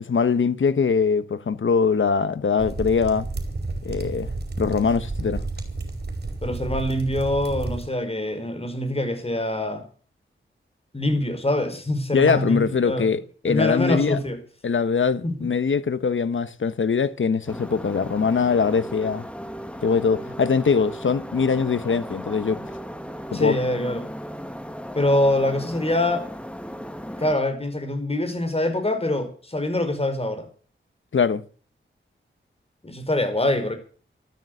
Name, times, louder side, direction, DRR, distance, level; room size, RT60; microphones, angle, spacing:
voice 1, 0.0-3.3 3.8-5.4 12.1-14.2 14.6-19.2 19.8-22.6 23.3-23.6 31.1-31.4, left 5 dB, 70° left, 1.2 m, -22 dB
sound 1, 2.6-7.9, right 3 dB, 50° right, 5.0 m, -31 dB
voice 2, 6.4-9.8 10.9-13.1 13.4-14.4 23.3-24.1 24.9-26.3 27.2-30.5 32.8-33.7, left 1 dB, 30° left, 4.9 m, -24 dB
sound 2, 17.5-27.3, equal, 5° left, 1.8 m, -36 dB
14.0 x 12.5 x 7.9 m
wide cardioid pair, 80°, 21 cm